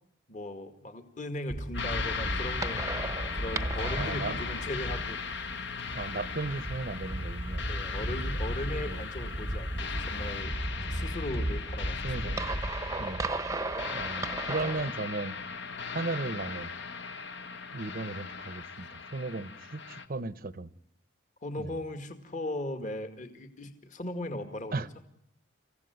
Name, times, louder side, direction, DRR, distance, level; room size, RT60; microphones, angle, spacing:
voice 1, 0.3-3.0 3.3-5.4 7.6-10.5 10.9-12.4 13.0-13.2 21.4-24.8, left 1 dB, 40° left, 7 dB, 2.1 m, -38 dB
sound 1, 1.5-14.9, right 1 dB, 15° right, 0.9 m, -35 dB
sound 2, 1.7-20.1, left 5 dB, 60° left, 1.7 m, -38 dB
voice 2, 4.0-4.4 5.9-7.6 8.8-9.0 11.1-11.2 12.0-12.5 13.0-13.3 13.9-15.4 15.9-16.7 17.7-20.7 21.6-21.8 24.7-24.9, right 3 dB, 45° right, 15 dB, 0.8 m, -36 dB
26.5 x 15.5 x 9.5 m, 0.77 s
head